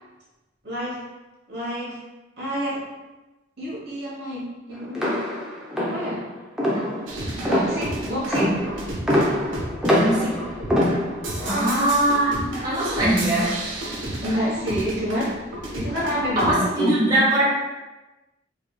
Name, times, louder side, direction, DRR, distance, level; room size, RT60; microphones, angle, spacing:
voice 1, 0.6-1.0 1.5-2.0 2.4-2.8 3.6-5.2 5.7-6.2 7.4-8.6 11.3-11.8 14.2-15.4 15.7-17.0, equal, 55° right, -6 dB, 1.1 m, -28 dB
sound 1, 4.9-11.4, left 1 dB, 5° right, 0.5 m, -24 dB
sound 2, 7.1-16.5, right 1 dB, 80° right, 0.8 m, -32 dB
voice 2, 9.9-10.4 11.5-13.5 16.4-17.5, right 1 dB, 20° right, -9 dB, 1.1 m, -22 dB
4.7 x 2.7 x 2.2 m, 1.1 s
head